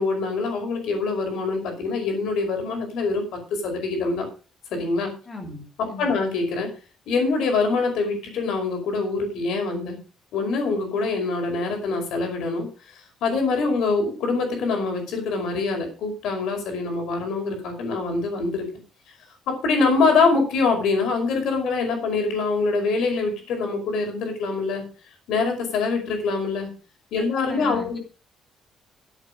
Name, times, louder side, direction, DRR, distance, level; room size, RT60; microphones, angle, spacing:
voice 1, 0.0-4.3 4.7-5.1 5.8-6.7 7.1-10.0 10.3-12.7 13.2-18.7 19.5-24.8 25.3-26.7 27.1-28.0, left 4 dB, 70° left, 4 dB, 5.2 m, -24 dB
voice 2, 5.3-5.6 5.9-6.1 27.3-28.0, left 3 dB, 20° left, 3 dB, 3.0 m, -36 dB
13.5 x 8.2 x 5.2 m, 0.36 s
cardioid pair, 180°, 0 cm